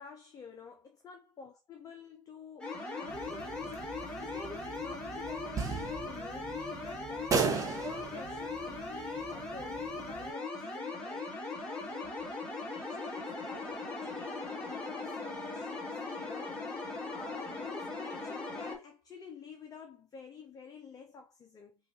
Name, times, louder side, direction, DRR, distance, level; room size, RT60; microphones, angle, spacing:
voice 1, 0.0-16.8 17.1-21.7, left 5 dB, 20° left, 0.6 m, -50 dB
sound 1, 2.6-18.8, left 3 dB, 5° left, 1.8 m, -39 dB
sound 2, 3.1-10.3, right 5 dB, 20° right, 0.9 m, -38 dB
4.9 x 2.4 x 2.7 m
hypercardioid pair, 90°, 17 cm